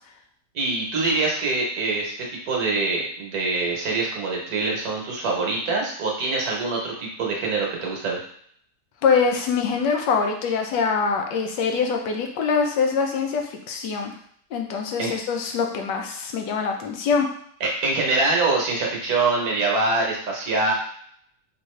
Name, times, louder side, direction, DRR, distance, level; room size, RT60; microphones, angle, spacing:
voice 1, 0.5-8.2 15.0-15.1 17.6-20.7, right 3 dB, 65° right, -1 dB, 1.2 m, -24 dB
voice 2, 9.0-14.1 14.5-17.3, left 5 dB, 85° left, 3 dB, 1.3 m, -24 dB
3.6 x 2.5 x 3.1 m, 0.64 s
omnidirectional pair, 1.8 m